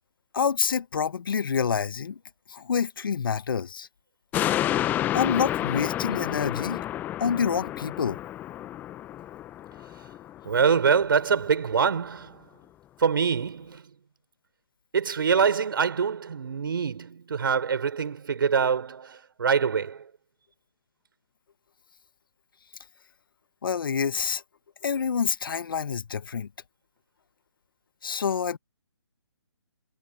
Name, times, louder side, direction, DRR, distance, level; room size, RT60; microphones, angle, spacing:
voice 1, 0.3-2.2 2.5-3.9 5.1-6.8 7.2-8.2 23.6-24.4 24.8-26.5 28.0-28.6, left 6 dB, 55° left, 1.8 m, -27 dB
sound 1, 4.3-11.0 11.4-11.5, left 13 dB, 10° left, 1.2 m, -30 dB
voice 2, 10.5-12.4 13.0-13.8 14.9-20.0, right 6 dB, 55° right, 5.9 m, -24 dB
figure-of-eight pair, 140°, 14 cm